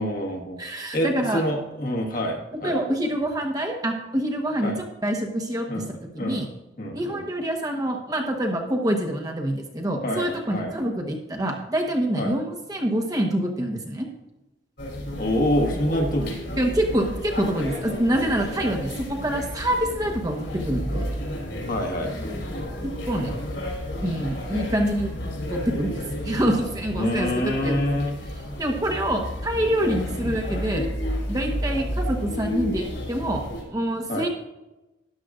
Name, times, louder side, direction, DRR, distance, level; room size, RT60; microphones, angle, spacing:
voice 1, 0.0-2.8 4.6-4.8 5.7-5.9 6.1-6.4 6.8-7.2 10.0-10.8 12.2-12.3 15.2-16.4 21.7-22.2 26.9-28.1 34.1-34.2, equal, 45° left, 1 dB, 1.6 m, -26 dB
voice 2, 0.6-1.4 2.6-4.7 5.0-5.8 6.2-6.5 6.9-14.1 16.6-20.4 20.6-21.1 22.8-23.3 24.0-25.1 25.5-27.9 28.6-30.9 31.3-33.4 33.7-34.3, right 1 dB, 20° right, 2 dB, 1.1 m, -26 dB
sound 1, 14.8-33.6, equal, 65° left, 3.3 m, -32 dB
13.0 x 10.0 x 2.5 m, 1.0 s
head